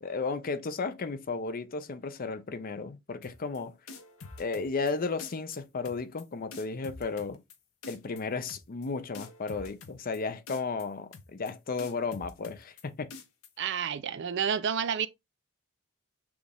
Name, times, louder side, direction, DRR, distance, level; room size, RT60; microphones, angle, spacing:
voice 1, 0.0-3.7 4.4-7.4 7.9-13.2, left 4 dB, 40° left, 0.5 m, -34 dB
sound 1, 3.2-3.6 3.9-4.9 5.2-5.6 5.8-6.2 6.5-7.6 7.8-8.2 8.5-8.9 9.1-10.2 10.5-10.9 11.1-11.5 11.8-12.8 13.1-13.5, left 3 dB, 65° left, 0.9 m, -46 dB
voice 2, 13.6-15.1, right 7 dB, 55° right, 0.5 m, -30 dB
6.0 x 2.4 x 3.4 m
head